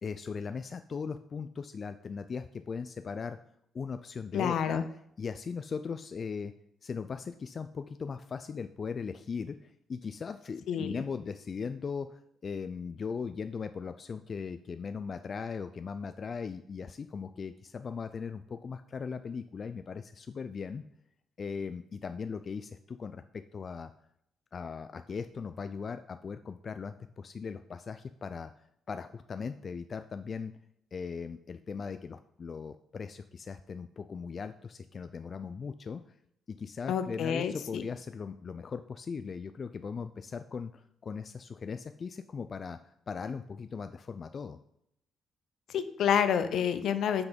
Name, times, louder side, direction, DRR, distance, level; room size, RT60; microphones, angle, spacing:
voice 1, 0.0-3.4 3.7-4.8 5.2-6.5 6.8-20.8 21.4-23.9 24.5-28.5 28.9-30.5 30.9-36.0 36.5-44.6, left 5 dB, 45° left, 9 dB, 0.3 m, -39 dB
voice 2, 4.3-4.9 10.7-11.0 36.9-37.8 45.7-47.2, left 8 dB, 75° left, 10 dB, 0.7 m, -29 dB
5.9 x 5.9 x 5.1 m, 0.76 s
cardioid pair, 90°, 0 cm